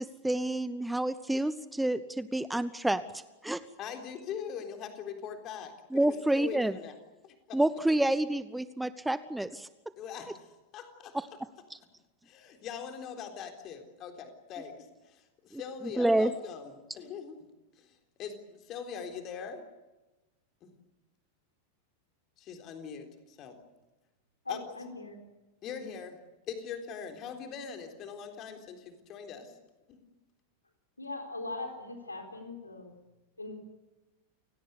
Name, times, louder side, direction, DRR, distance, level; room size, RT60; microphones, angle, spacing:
voice 1, 0.0-3.0 3.4-3.6 5.9-6.7 7.5-9.7 15.5-15.6 16.0-16.3, right 1 dB, 5° right, 16 dB, 0.8 m, -28 dB
voice 2, 3.8-7.0 7.2-7.6 10.0-11.2 12.2-17.4 17.7-19.6 20.6-20.7 22.4-23.6 24.5-24.6 25.6-26.2 26.5-29.5 29.9-30.0, left 7 dB, 35° left, 5 dB, 3.8 m, -42 dB
voice 3, 24.5-25.2 25.8-25.9 31.0-32.9 33.4-33.6, left 2 dB, 80° left, 4 dB, 4.1 m, -40 dB
29.0 x 18.0 x 8.2 m, 1.1 s
figure-of-eight pair, 90°, 0 cm